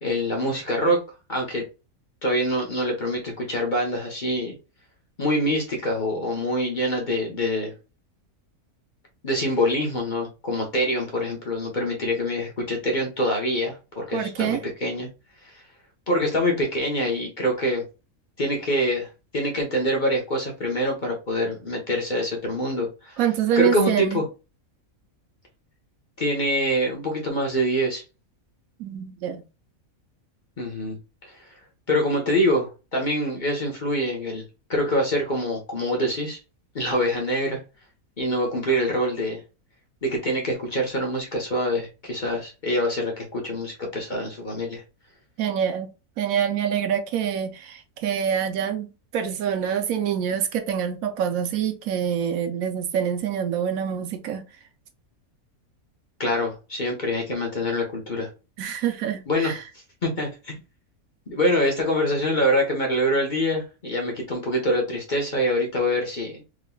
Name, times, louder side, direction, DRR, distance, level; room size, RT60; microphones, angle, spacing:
voice 1, 0.0-1.0 1.3-1.6 2.2-4.5 5.2-7.7 9.2-15.1 16.1-17.8 18.4-19.1 19.3-23.2 23.5-24.2 26.2-28.0 30.6-31.5 31.9-36.4 36.7-37.6 38.2-39.4 40.0-44.8 56.2-58.3 59.3-59.6 60.0-60.5 61.3-66.4, equal, 40° left, 0.9 m, -25 dB
voice 2, 14.1-14.6 23.2-24.2 28.8-29.4 45.4-45.9 46.2-48.9 49.1-54.4 58.6-59.6, right 8 dB, 75° right, 1.0 m, -26 dB
3.6 x 3.0 x 2.2 m
omnidirectional pair, 1.5 m